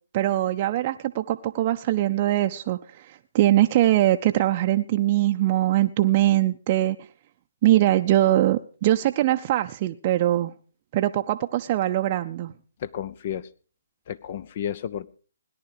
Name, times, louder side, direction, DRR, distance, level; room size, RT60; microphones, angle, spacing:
voice 1, 0.1-7.0 7.6-10.5 10.9-12.5, right 14 dB, 35° right, 6 dB, 0.6 m, -22 dB
voice 2, 12.8-13.5 14.1-15.1, left 9 dB, 45° left, 18 dB, 0.7 m, -32 dB
17.5 x 10.5 x 4.9 m, 0.40 s
figure-of-eight pair, 140°, 0 cm